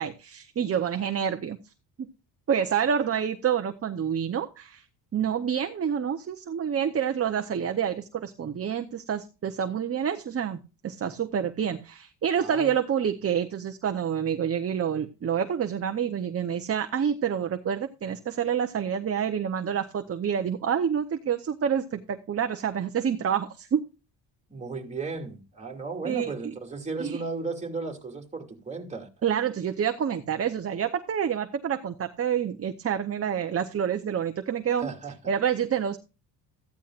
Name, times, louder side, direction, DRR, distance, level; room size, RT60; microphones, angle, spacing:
voice 1, 0.0-1.6 2.5-4.8 5.1-10.6 10.8-23.8 26.0-26.5 27.0-27.2 29.2-34.9 35.3-36.0, right 8 dB, 35° right, 0.8 m, -28 dB
voice 2, 12.4-12.8 24.5-29.1 34.8-35.1, right 4 dB, 15° right, 2.7 m, -35 dB
14.5 x 10.0 x 2.5 m
cardioid pair, 105°, 43 cm